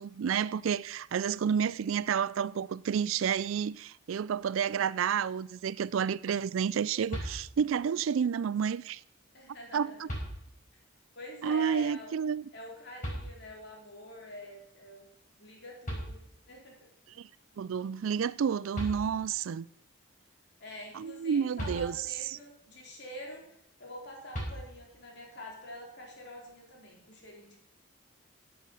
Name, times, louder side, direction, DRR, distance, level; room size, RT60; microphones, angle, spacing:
voice 1, 0.0-9.0 9.7-10.1 11.4-12.4 17.2-17.3 17.6-19.7 20.9-22.0, right 7 dB, 75° right, 0.4 m, -30 dB
sound 1, 7.1-7.9 9.4-9.5 10.1-10.8 13.0-13.8 15.5-15.6 15.8-16.7 18.4-18.5 18.7-19.5 21.6-22.4 24.3-25.1, equal, 35° left, 5.0 m, -39 dB
voice 2, 9.3-10.0 11.1-12.2 12.5-15.1 15.3-16.2 16.5-16.9 20.6-27.6, left 1 dB, 55° left, 3.5 m, -46 dB
11.5 x 7.9 x 6.8 m
head